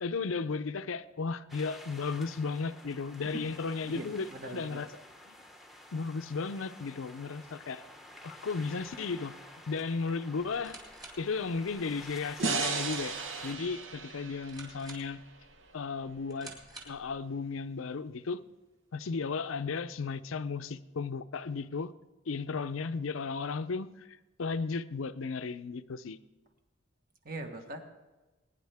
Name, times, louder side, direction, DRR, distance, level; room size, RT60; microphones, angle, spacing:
voice 1, 0.0-4.9 5.3-5.4 5.9-7.8 8.2-9.4 9.7-10.8 11.2-15.2 15.7-16.5 16.9-18.4 18.9-21.9 22.3-26.2, left 4 dB, 90° left, 0.5 m, -35 dB
sound 1, 1.5-13.5, left 1 dB, ahead, 0.9 m, -50 dB
voice 2, 3.2-3.5 3.8-4.8 27.2-27.8, right 1 dB, 45° right, 1.5 m, -42 dB
sound 2, 10.5-17.1, right 2 dB, 20° right, 3.2 m, -51 dB
sound 3, 12.4-15.6, right 4 dB, 80° right, 1.0 m, -35 dB
21.5 x 10.0 x 3.5 m
head